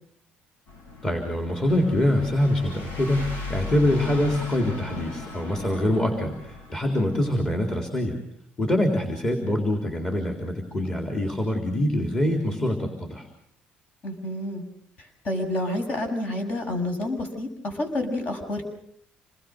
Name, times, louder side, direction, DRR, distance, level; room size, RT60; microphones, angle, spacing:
sound 1, 0.7-7.3, left 3 dB, 70° left, 7.4 m, -37 dB
voice 1, 1.0-3.2 3.5-8.2 8.6-13.3, left 1 dB, 20° left, 2 dB, 3.7 m, -24 dB
voice 2, 5.9-6.3 14.0-14.6 15.0-18.7, left 1 dB, 45° left, 5 dB, 7.0 m, -29 dB
27.5 x 21.0 x 6.6 m, 0.68 s
cardioid pair, 140°, 4 cm